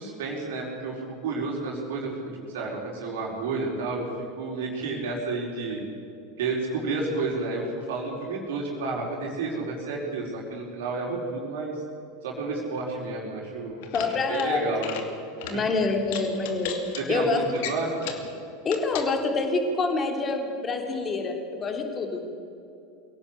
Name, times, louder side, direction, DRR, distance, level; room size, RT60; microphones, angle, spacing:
voice 1, 0.0-2.2 2.5-4.0 4.4-5.8 6.4-11.7 12.2-14.9 15.4-15.6 17.0-18.1, right 3 dB, 60° right, -2 dB, 4.9 m, -31 dB
sound 1, 13.7-14.5 14.7-15.1 15.4-15.6 16.1-17.0 17.5-18.3 18.7-19.1, left 9 dB, 55° left, 2.7 m, -36 dB
voice 2, 13.9-14.6 15.5-16.8 17.1-17.4 18.6-22.3, left 3 dB, 25° left, 4 dB, 3.5 m, -26 dB
24.5 x 17.5 x 8.4 m, 2.8 s
figure-of-eight pair, 80°, 0 cm